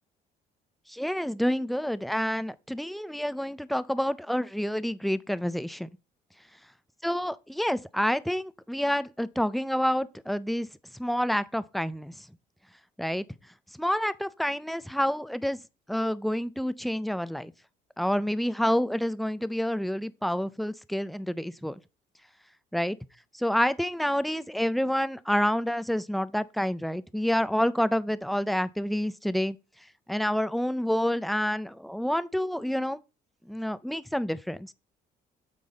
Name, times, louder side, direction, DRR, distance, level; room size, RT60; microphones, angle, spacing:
voice 1, 0.9-5.9 7.0-10.7 10.9-12.3 13.0-13.2 13.7-15.6 15.9-17.5 18.0-21.8 22.7-23.0 23.3-29.6 30.1-33.0 33.5-34.7, equal, ahead, 0.4 m, -28 dB
8.4 x 4.0 x 3.9 m
cardioid pair, 110°, 17 cm